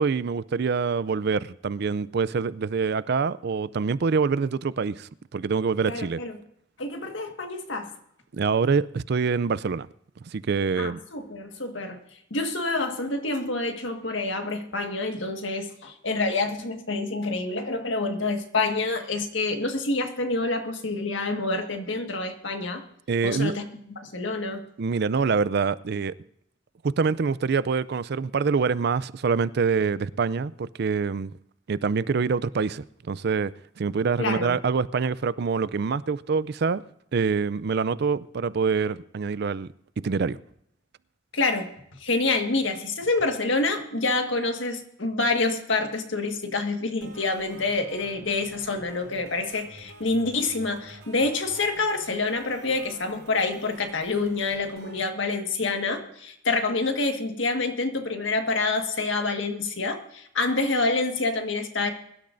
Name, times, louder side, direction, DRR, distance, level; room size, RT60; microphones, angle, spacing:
voice 1, 0.0-6.2 8.3-9.9 10.2-11.0 23.1-23.5 24.8-26.1 26.8-31.3 31.7-36.8 37.1-39.7 40.0-40.4, right 5 dB, 55° right, 18 dB, 0.4 m, -25 dB
voice 2, 5.9-6.4 6.8-7.9 10.8-12.0 12.3-22.8 23.2-23.7 23.9-24.6 34.2-34.5 41.3-41.7 42.0-61.9, left 3 dB, 75° left, 5 dB, 1.7 m, -27 dB
sound 1, 47.0-55.0, right 2 dB, 90° right, 4.9 m, -48 dB
22.5 x 12.0 x 2.6 m, 0.73 s
head